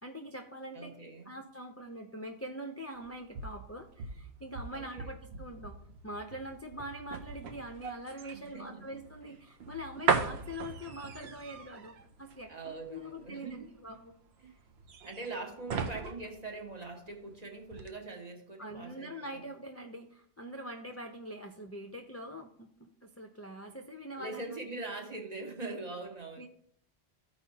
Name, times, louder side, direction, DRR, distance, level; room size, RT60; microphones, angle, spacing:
voice 1, 0.0-5.8 6.0-14.2 18.6-24.4 26.4-26.5, equal, 20° left, 2 dB, 0.4 m, -44 dB
voice 2, 0.7-1.3 4.7-5.1 8.3-8.9 9.2-9.3 12.5-13.7 14.4-14.6 15.0-19.4 24.2-26.5, right 3 dB, 40° right, 1 dB, 1.4 m, -42 dB
sound 1, 3.0-17.3 17.7-17.9, right 5 dB, 75° right, 0.9 m, -38 dB
14.5 x 4.8 x 2.8 m, 0.67 s
omnidirectional pair, 1.1 m